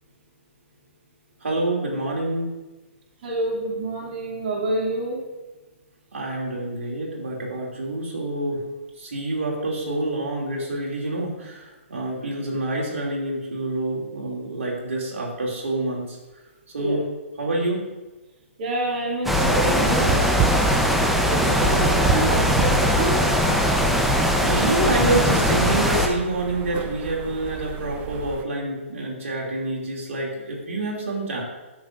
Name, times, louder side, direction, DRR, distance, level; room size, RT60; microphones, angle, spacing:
voice 1, 1.4-2.5 6.1-8.7 9.0-16.2 16.7-17.0 17.4-17.9 21.4-21.9 24.4-31.4, right 2 dB, 80° right, -3 dB, 2.7 m, -27 dB
voice 2, 3.2-5.2 16.8-17.0 18.6-20.2 21.3-23.2, right 1 dB, 50° right, -4 dB, 2.6 m, -27 dB
sound 1, 19.2-26.1, equal, ahead, 0.8 m, -20 dB
sound 2, 19.6-28.4, right 8 dB, 20° right, 0.4 m, -31 dB
13.5 x 7.3 x 2.6 m, 1.1 s
hypercardioid pair, 140°, 7 cm